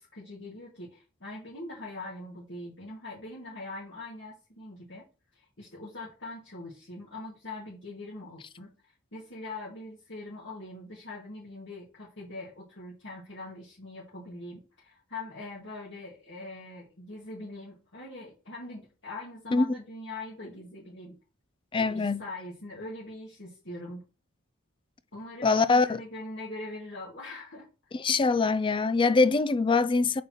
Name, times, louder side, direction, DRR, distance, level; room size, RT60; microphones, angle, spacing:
voice 1, 0.0-5.0 5.3-8.7 9.1-21.2 21.8-24.0 25.1-27.7, left 2 dB, 60° left, 1.9 m, -42 dB
voice 2, 21.7-22.2 25.4-26.0 28.0-30.2, left 4 dB, 25° left, 0.4 m, -23 dB
7.1 x 5.6 x 3.0 m
head